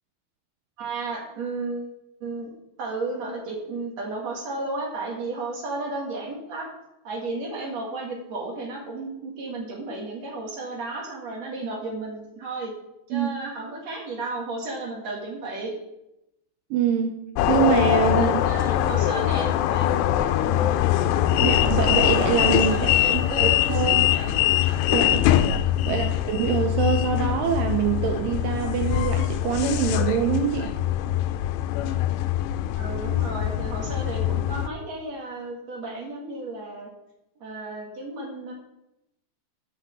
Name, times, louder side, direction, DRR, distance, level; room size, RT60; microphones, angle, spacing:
voice 1, 0.8-2.5 2.8-6.7 7.0-12.7 13.1-15.7 18.1-20.0 20.4-20.8 22.7-24.5 25.8-26.1 32.7-36.9 37.4-38.5, right 2 dB, 50° right, -1 dB, 2.6 m, -33 dB
voice 2, 16.7-17.1 17.5-18.4 21.4-24.1 24.9-25.3 25.9-30.7, right 8 dB, 80° right, 5 dB, 2.0 m, -25 dB
sound 1, 17.4-34.7, left 12 dB, 90° left, 2.7 m, -23 dB
8.1 x 6.0 x 7.2 m, 0.87 s
omnidirectional pair, 4.7 m